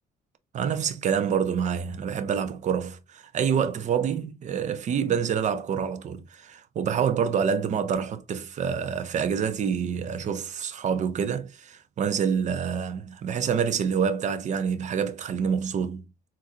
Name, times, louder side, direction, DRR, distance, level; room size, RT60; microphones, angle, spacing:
voice 1, 0.5-16.0, right 7 dB, 45° right, 0.6 m, -27 dB
3.9 x 2.6 x 2.7 m
cardioid pair, 110°, 17 cm